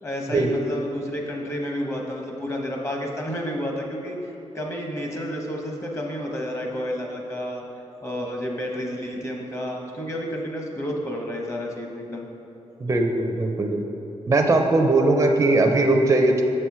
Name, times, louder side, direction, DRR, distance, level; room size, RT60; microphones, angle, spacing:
voice 1, 0.0-7.6 8.0-12.3, equal, 25° left, 0 dB, 0.9 m, -30 dB
voice 2, 12.8-13.8 14.3-16.4, right 2 dB, 25° right, 3 dB, 0.5 m, -19 dB
6.8 x 4.4 x 4.7 m, 2.9 s
wide cardioid pair, 110°, 12 cm